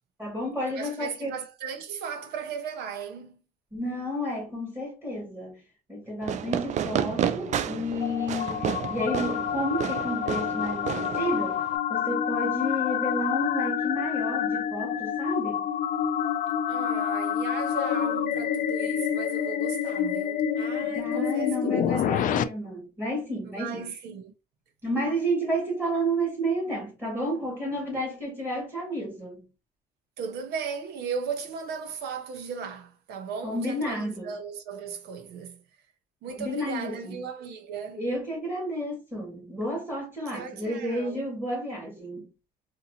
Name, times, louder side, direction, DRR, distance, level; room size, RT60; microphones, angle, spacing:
voice 1, 0.2-1.3 3.7-5.6 5.9-11.6 11.9-15.7 20.8-23.8 24.8-29.4 33.4-34.3 36.4-37.2 37.9-42.3, equal, 15° right, 1.9 m, -31 dB
voice 2, 0.7-3.4 16.6-22.4 23.4-24.3 30.2-35.6 36.2-38.1 40.3-41.3, right 6 dB, 75° right, 0.8 m, -37 dB
Fireworks, 6.2-11.8, right 9 dB, 45° right, 0.4 m, -31 dB
sound 1, 7.4-22.4, left 9 dB, 50° left, 0.4 m, -28 dB
3.8 x 2.6 x 2.8 m
cardioid pair, 110°, 17 cm